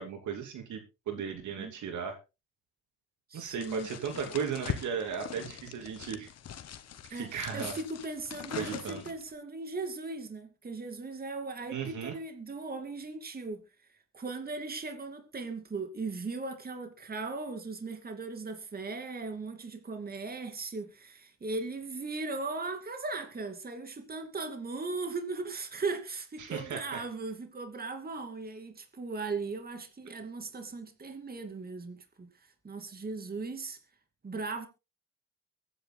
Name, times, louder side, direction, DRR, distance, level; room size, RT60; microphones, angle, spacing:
voice 1, 0.0-2.2 3.3-6.3 7.2-7.8 8.5-9.0 11.7-12.1 26.4-27.0, right 6 dB, 70° right, 2.9 m, -36 dB
voice 2, 3.3-3.9 7.1-13.6 14.1-33.8 34.2-34.7, right 3 dB, 30° right, 2.6 m, -38 dB
sound 1, 3.6-9.3, left 9 dB, 55° left, 1.2 m, -42 dB
23.5 x 10.0 x 2.2 m
cardioid pair, 90°, 30 cm